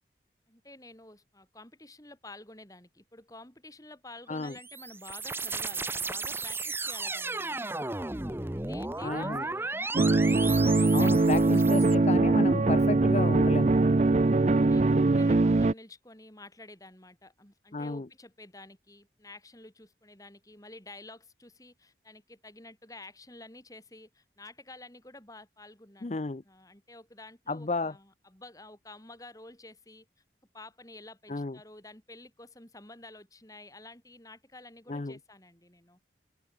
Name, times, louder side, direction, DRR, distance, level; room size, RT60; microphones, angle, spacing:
voice 1, 0.5-7.8 8.5-11.9 14.0-30.1 30.5-36.0, left 2 dB, 20° left, 4.4 m, -50 dB
sound 1, 4.3-11.9, right 3 dB, 15° right, 0.9 m, -35 dB
voice 2, 9.0-9.5 10.9-13.7 17.7-18.1 26.0-26.4 27.5-27.9 31.3-31.6 34.9-35.2, left 3 dB, 40° left, 0.6 m, -32 dB
sound 2, 9.9-15.7, right 3 dB, 40° right, 0.4 m, -22 dB
open air
head